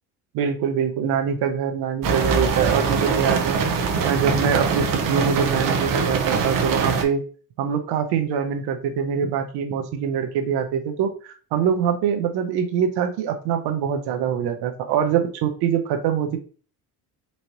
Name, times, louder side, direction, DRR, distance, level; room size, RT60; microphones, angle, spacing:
voice 1, 0.3-3.6 4.0-7.2 7.6-16.4, right 7 dB, 85° right, 6 dB, 0.8 m, -24 dB
sound 1, 2.0-7.0, right 5 dB, 60° right, 0.9 m, -22 dB
4.0 x 3.2 x 2.9 m, 0.39 s
cardioid pair, 100°, 38 cm